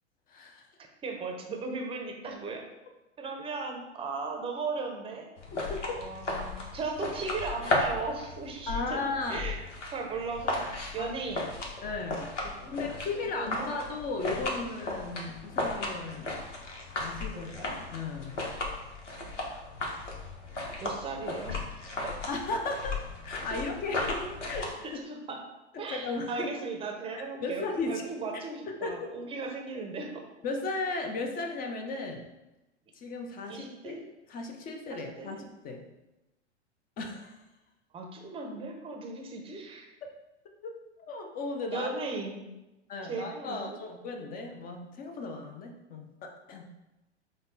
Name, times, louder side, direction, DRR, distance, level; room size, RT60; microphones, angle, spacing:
voice 1, 0.3-0.7 5.5-6.0 8.7-9.5 11.0-11.1 11.8-12.3 12.7-16.3 17.0-17.5 17.9-18.4 22.3-23.0 23.2-24.2 24.5-25.0 25.7-26.5 27.4-28.0 28.7-29.1 30.4-32.2 32.9-34.0 34.3-35.9 37.0-37.4 40.0-40.1 40.6-40.8 41.1-41.9 42.9-46.7, left 3 dB, 25° left, 4 dB, 0.6 m, -36 dB
voice 2, 1.0-2.6 3.2-5.3 6.0-9.0 9.3-9.6 9.9-11.5 12.4-12.8 13.2-13.8 17.3-17.7 20.8-21.6 22.0-22.2 23.5-23.6 24.0-24.4 24.8-25.4 25.8-30.2 33.5-34.0 34.9-35.3 37.9-39.9 41.7-42.4 43.0-43.8, right 4 dB, 15° right, 2 dB, 0.7 m, -37 dB
sound 1, 5.4-24.7, left 2 dB, 90° left, 1.1 m, -35 dB
5.1 x 2.3 x 4.0 m, 0.99 s
hypercardioid pair, 105°, 35 cm